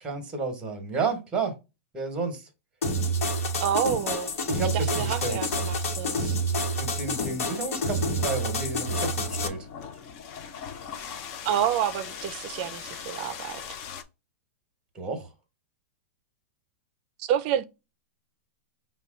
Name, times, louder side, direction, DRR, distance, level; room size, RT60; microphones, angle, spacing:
voice 1, 0.0-1.5 1.9-2.5 4.5-5.5 6.8-9.6 14.9-15.3, right 4 dB, 10° right, 1.1 m, -31 dB
sound 1, 2.8-9.5, equal, 85° left, 1.1 m, -28 dB
voice 2, 3.6-4.3 4.7-6.4 11.5-13.6 17.2-17.6, right 10 dB, 40° right, 0.4 m, -28 dB
sound 2, 8.5-14.0, left 7 dB, 35° left, 0.5 m, -40 dB
5.5 x 2.2 x 3.6 m
supercardioid pair, 160°, 8 cm